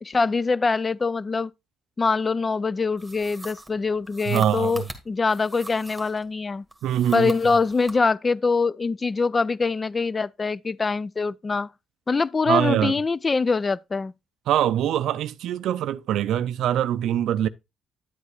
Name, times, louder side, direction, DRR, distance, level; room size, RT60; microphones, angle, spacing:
voice 1, 0.0-1.5 2.0-6.6 7.1-11.7 12.1-14.1, left 4 dB, 30° left, 0.3 m, -24 dB
sound 1, 3.0-6.3 6.7-8.0, right 2 dB, 10° right, 1.7 m, -41 dB
voice 2, 4.3-4.8 6.8-7.3 12.5-12.9 14.5-17.5, right 11 dB, 80° right, 0.4 m, -23 dB
10.0 x 8.1 x 2.4 m
cardioid pair, 90°, 0 cm